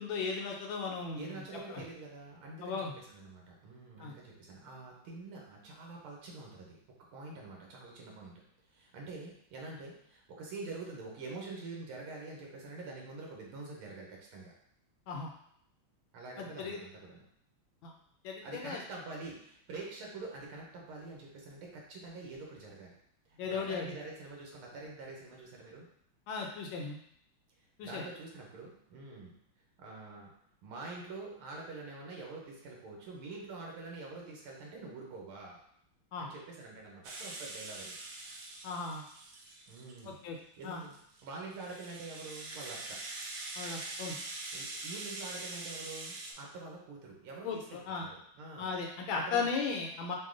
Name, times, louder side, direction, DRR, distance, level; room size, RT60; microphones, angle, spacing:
voice 1, 0.0-1.4 1.7-1.8 2.6-2.9 4.0-4.1 15.1-15.3 16.4-16.8 17.8-17.9 18.2-18.8 23.4-23.9 26.3-27.0 27.8-28.0 36.1-36.3 38.6-39.0 40.0-40.4 40.6-40.8 43.6-44.2 47.4-48.1 48.6-50.2, left 5 dB, 75° left, 1 dB, 1.3 m, -36 dB
voice 2, 1.1-6.8 7.1-8.3 8.7-14.5 16.1-17.2 18.4-22.9 23.3-25.9 27.8-29.3 29.8-30.3 30.6-35.6 36.2-38.0 39.7-40.2 40.6-41.0 41.2-43.0 44.5-48.7 49.1-49.5, right 3 dB, 85° right, -1 dB, 1.8 m, -46 dB
Rattle (instrument), 37.0-40.1 40.6-46.3, right 2 dB, 70° right, 0.9 m, -43 dB
5.2 x 2.2 x 3.7 m, 0.68 s
omnidirectional pair, 2.3 m